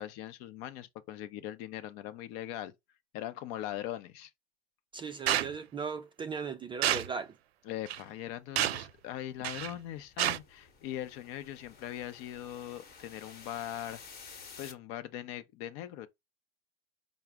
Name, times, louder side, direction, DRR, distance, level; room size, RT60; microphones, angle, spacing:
voice 1, 0.0-2.7 3.1-4.3 7.7-14.0 14.6-16.1, left 12 dB, 50° left, 0.7 m, -40 dB
voice 2, 4.9-7.4, right 5 dB, 15° right, 0.3 m, -37 dB
sound 1, 5.3-5.5 6.8-7.1 7.9-8.0 8.6-8.9 9.4-9.7 10.2-10.4, right 12 dB, 85° right, 0.5 m, -29 dB
sound 2, 8.9-14.7, left 5 dB, 30° left, 1.1 m, -53 dB
4.8 x 2.1 x 3.5 m
hypercardioid pair, 105°, 31 cm